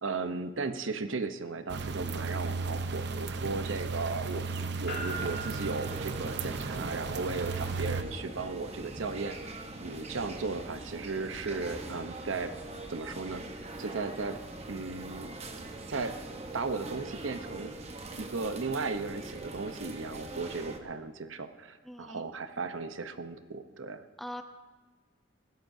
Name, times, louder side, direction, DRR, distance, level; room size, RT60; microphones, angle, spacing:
voice 1, 0.0-4.5 4.8-12.5 12.9-13.4 13.8-14.4 14.7-15.4 15.9-16.2 16.5-17.7 18.1-24.0, right 4 dB, 90° right, 9 dB, 0.9 m, -36 dB
sound 1, 1.7-8.0, right 4 dB, 60° right, 0.7 m, -35 dB
sound 2, 4.9-19.1, right 2 dB, 80° left, 2.6 m, -49 dB
sound 3, 5.1-20.8, right 2 dB, 35° right, 1.0 m, -42 dB
voice 2, 21.9-22.2 24.2-24.4, left 1 dB, ahead, 6 dB, 0.6 m, -42 dB
20.0 x 16.0 x 2.7 m, 1.3 s
head